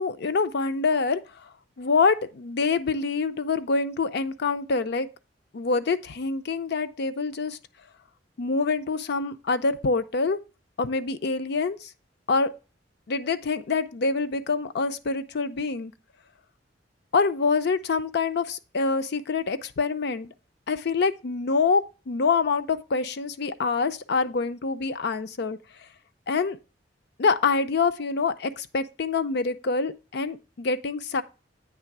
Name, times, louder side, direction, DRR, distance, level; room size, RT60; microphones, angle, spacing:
voice 1, 0.0-1.5 1.8-5.1 5.5-7.6 8.4-10.4 10.8-11.9 12.3-12.5 13.1-15.9 17.1-20.3 20.7-25.6 26.3-26.6 27.2-31.2, left 4 dB, 60° left, 0.5 m, -26 dB
8.7 x 3.3 x 5.8 m
head